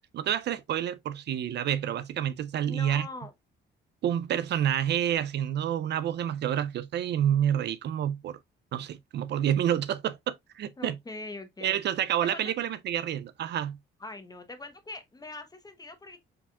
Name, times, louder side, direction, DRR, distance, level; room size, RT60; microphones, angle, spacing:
voice 1, 0.1-3.1 4.0-8.4 8.7-11.0 11.6-13.8, right 10 dB, 60° right, 0.4 m, -28 dB
voice 2, 2.7-3.3 10.8-11.8 12.2-12.5 14.0-16.2, left 2 dB, 20° left, 0.9 m, -42 dB
4.9 x 3.5 x 2.3 m
cardioid pair, 90°, 20 cm